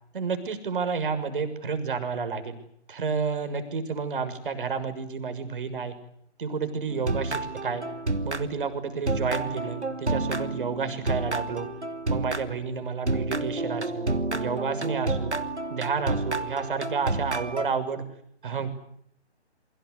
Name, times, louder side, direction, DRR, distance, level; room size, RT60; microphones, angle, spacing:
voice 1, 0.1-2.6 2.9-5.9 6.4-7.8 8.2-11.7 12.1-15.3 15.7-18.0 18.4-18.7, right 5 dB, 50° right, 9 dB, 6.5 m, -30 dB
sound 1, 6.9-8.8 9.1-12.7 13.1-17.7, right 2 dB, 80° right, 3.0 m, -30 dB
28.0 x 24.0 x 8.4 m, 0.70 s
figure-of-eight pair, 140°, 34 cm